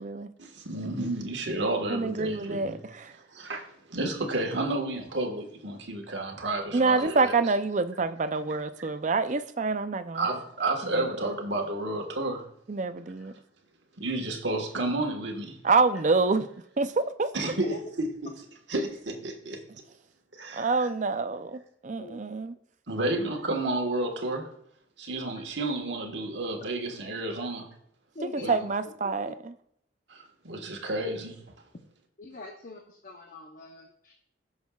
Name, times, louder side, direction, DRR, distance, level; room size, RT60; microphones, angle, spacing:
voice 1, 0.4-2.8 3.3-7.3 10.1-12.4 14.0-15.6 17.3-18.3 18.7-19.6 20.3-20.7 22.9-24.5 25.0-27.7 28.4-28.5 30.1-31.4, right 2 dB, 65° right, 1.5 m, -31 dB
voice 2, 1.9-3.1 6.7-10.3 10.9-11.1 12.7-13.3 15.6-16.5 16.8-17.5 20.5-22.6 28.2-29.5, right 4 dB, 40° right, 0.5 m, -27 dB
voice 3, 17.5-17.9 21.9-22.2 27.4-27.5 28.1-28.6 29.3-29.4 32.2-34.1, left 2 dB, 45° left, 0.8 m, -43 dB
16.0 x 6.3 x 2.4 m
head